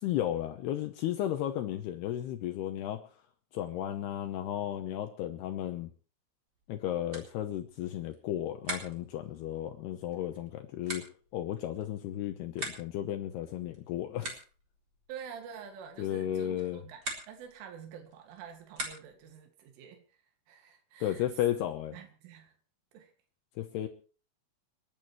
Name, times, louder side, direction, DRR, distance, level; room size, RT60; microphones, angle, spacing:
voice 1, 0.0-3.1 3.5-5.9 6.7-14.4 16.0-16.8 21.0-22.0 23.6-23.9, left 12 dB, 75° left, 6 dB, 2.5 m, -34 dB
sound 1, 6.5-19.4, right 1 dB, 25° right, 4.1 m, -46 dB
voice 2, 15.1-20.0 20.5-21.2 21.9-22.5 22.9-23.1, right 7 dB, 80° right, 4 dB, 4.6 m, -47 dB
29.5 x 10.5 x 3.2 m, 0.38 s
omnidirectional pair, 5.6 m